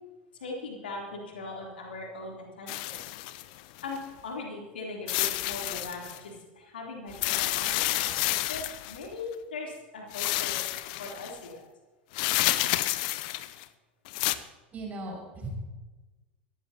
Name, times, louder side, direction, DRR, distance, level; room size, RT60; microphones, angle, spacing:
voice 1, 0.3-3.0 3.8-7.7 8.0-10.6 11.0-11.6, left 3 dB, 70° left, -1 dB, 3.4 m, -40 dB
sound 1, 2.7-4.0 5.1-6.2 7.1-9.1 10.1-11.3 12.1-13.6 14.1-14.3, left 17 dB, 55° left, 0.6 m, -29 dB
voice 2, 14.1-15.5, right 2 dB, 30° right, 0 dB, 6.0 m, -40 dB
23.5 x 14.5 x 2.9 m, 1.2 s
figure-of-eight pair, 80°, 6 cm